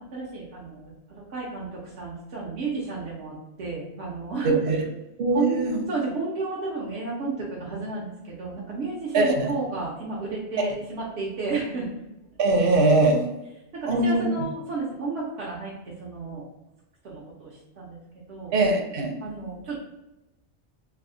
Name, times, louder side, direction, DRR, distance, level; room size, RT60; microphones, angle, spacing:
voice 1, 0.0-4.6 5.3-11.9 13.8-16.5 17.0-18.0 18.3-18.5 19.2-19.8, right 3 dB, 85° right, -5 dB, 1.0 m, -32 dB
voice 2, 5.2-5.7 9.1-9.5 12.4-13.4 13.9-14.2 18.5-19.2, right 2 dB, 60° right, 3 dB, 0.8 m, -21 dB
3.3 x 2.0 x 3.7 m, 0.95 s
omnidirectional pair, 1.1 m